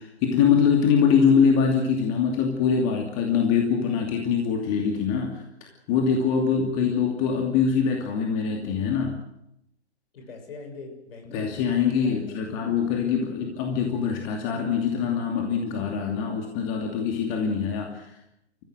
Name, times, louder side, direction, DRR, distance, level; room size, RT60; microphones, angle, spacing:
voice 1, 0.0-9.2 11.3-18.1, left 6 dB, 30° left, 2 dB, 2.6 m, -23 dB
voice 2, 10.1-11.5 12.0-12.4 12.7-12.9, left 3 dB, 60° left, 5 dB, 6.6 m, -43 dB
27.5 x 15.0 x 7.8 m, 0.83 s
hypercardioid pair, 130°, 33 cm